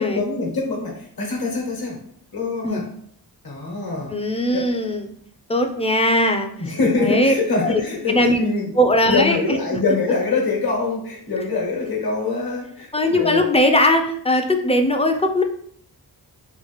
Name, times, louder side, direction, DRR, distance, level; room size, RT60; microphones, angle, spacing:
voice 1, 0.0-2.0 2.3-2.9 3.4-4.1 4.5-4.7 6.6-8.7 9.1-13.5, left 3 dB, 55° left, -1 dB, 1.1 m, -24 dB
voice 2, 4.1-5.1 5.5-6.5 7.0-7.3 7.6-7.8 8.1-8.4 8.8-9.4 12.9-15.4, left 1 dB, 15° left, 5 dB, 0.3 m, -19 dB
3.0 x 2.4 x 3.2 m, 0.64 s
cardioid pair, 70°, 43 cm